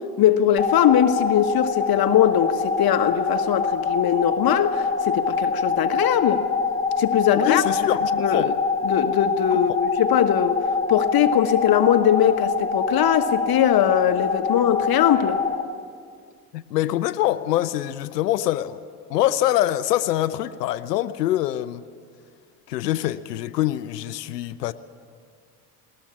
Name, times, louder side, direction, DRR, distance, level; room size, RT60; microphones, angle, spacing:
voice 1, 0.2-6.4 7.0-7.6 8.2-8.5 8.8-10.6 10.9-15.4, left 10 dB, 50° left, 1.3 m, -20 dB
sound 1, 0.6-15.6, left 5 dB, 10° left, 2.1 m, -25 dB
voice 2, 7.4-8.5 9.5-9.6 16.5-18.8 19.1-21.8 22.7-24.7, left 13 dB, 90° left, 0.7 m, -24 dB
20.5 x 19.0 x 8.6 m
hypercardioid pair, 70°, 47 cm